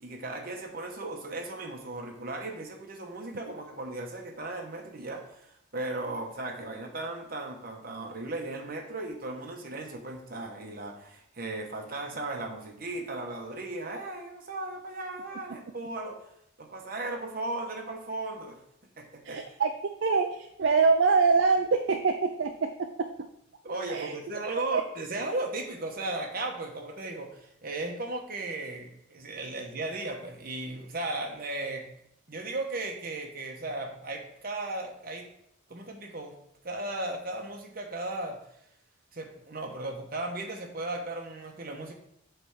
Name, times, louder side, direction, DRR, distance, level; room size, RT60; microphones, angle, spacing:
voice 1, 0.0-16.3 16.6-18.6 19.0-19.4 23.6-31.9 32.3-35.3 35.7-36.4 36.6-38.4 39.1-41.9, right 2 dB, 45° right, 2 dB, 1.1 m, -36 dB
voice 2, 19.2-19.7 20.0-23.1 23.9-24.1 24.7-24.8, right 4 dB, 60° right, 6 dB, 0.4 m, -24 dB
7.9 x 3.4 x 5.7 m, 0.74 s
head